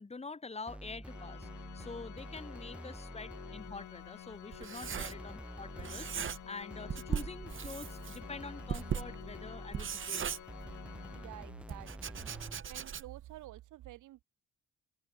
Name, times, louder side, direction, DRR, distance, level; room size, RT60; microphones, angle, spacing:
voice 1, 0.0-10.4, left 4 dB, 20° left, 2.3 m, -46 dB
sound 1, 0.7-3.9 4.8-10.0 10.5-12.7, right 1 dB, 5° right, 4.0 m, -47 dB
Organ, 1.0-11.8, left 12 dB, 75° left, 4.1 m, -51 dB
Writing, 3.6-5.5 5.8-6.6 6.9-11.1 11.7-13.3, right 8 dB, 40° right, 1.2 m, -39 dB
voice 2, 11.1-12.3 12.7-14.2, right 15 dB, 85° right, 1.6 m, -50 dB
open air
cardioid pair, 90°, 30 cm